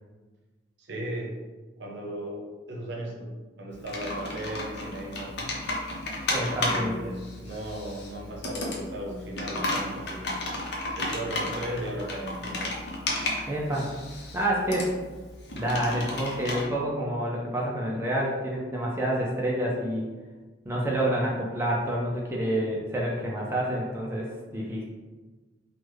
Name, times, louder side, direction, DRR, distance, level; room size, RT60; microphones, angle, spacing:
voice 1, 0.8-1.3 1.8-3.3 3.6-5.5 6.6-10.4 10.9-12.8, right 1 dB, 65° right, -1 dB, 0.7 m, -36 dB
Computer keyboard, 3.7-16.6, left 2 dB, 60° left, 0.6 m, -33 dB
voice 2, 6.3-7.0 13.5-13.9 14.3-14.9 15.5-20.1 20.7-24.8, right 1 dB, 15° right, -3 dB, 0.3 m, -28 dB
3.3 x 2.1 x 3.2 m, 1.3 s
head